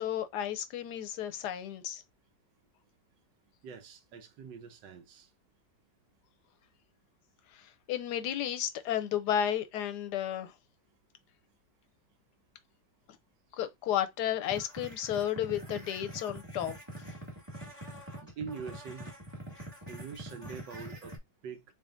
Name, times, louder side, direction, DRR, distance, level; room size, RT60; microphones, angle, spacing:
voice 1, 0.0-2.0 7.5-10.5 13.6-16.7, left 10 dB, 75° left, 1.1 m, -33 dB
voice 2, 3.6-5.3 18.4-19.1 19.9-21.6, right 6 dB, 80° right, 1.5 m, -44 dB
sound 1, 14.5-21.2, right 1 dB, 10° right, 1.5 m, -45 dB
4.1 x 3.5 x 2.5 m
omnidirectional pair, 2.0 m